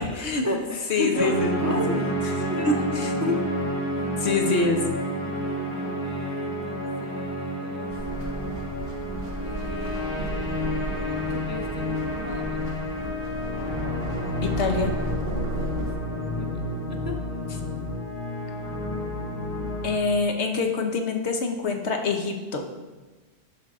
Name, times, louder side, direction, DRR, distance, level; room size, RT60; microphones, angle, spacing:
voice 1, 0.0-2.8 3.2-4.6 5.2-7.9 9.4-12.8 15.4-15.8 16.4-17.4, left 1 dB, 25° right, 3 dB, 0.4 m, -34 dB
voice 2, 0.9-2.0 2.7-3.1 4.2-4.8 14.4-14.9 19.8-22.6, left 3 dB, 80° left, 4 dB, 1.2 m, -25 dB
sound 1, 1.1-20.0, equal, 50° left, 2.3 m, -30 dB
sound 2, 7.9-16.0, right 3 dB, 65° right, 1.0 m, -35 dB
10.5 x 6.3 x 3.6 m, 1.3 s
omnidirectional pair, 1.1 m